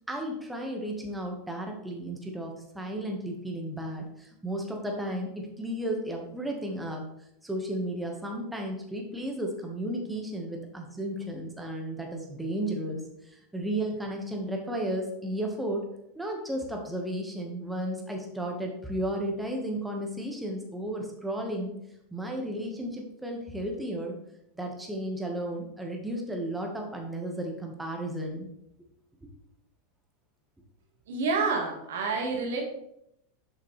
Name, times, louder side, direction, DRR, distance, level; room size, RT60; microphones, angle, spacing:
voice 1, 0.1-7.0 7.4-15.9 16.1-21.7 22.1-24.2 24.5-28.5, right 1 dB, 5° right, 1 dB, 1.5 m, -33 dB
voice 2, 31.1-32.6, right 4 dB, 75° right, 2 dB, 1.7 m, -28 dB
7.4 x 5.6 x 3.3 m, 0.78 s
hypercardioid pair, 105°, 0 cm